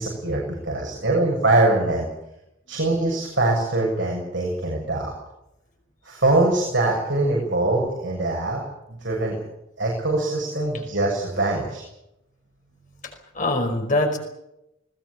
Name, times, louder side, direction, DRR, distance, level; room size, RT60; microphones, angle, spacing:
voice 1, 0.0-2.1 2.7-5.1 6.0-8.6 8.9-9.4 9.8-11.8, right 2 dB, 60° right, -1 dB, 7.2 m, -23 dB
voice 2, 13.0-14.2, left 2 dB, 40° left, 3 dB, 5.0 m, -24 dB
21.0 x 19.5 x 8.5 m, 0.84 s
head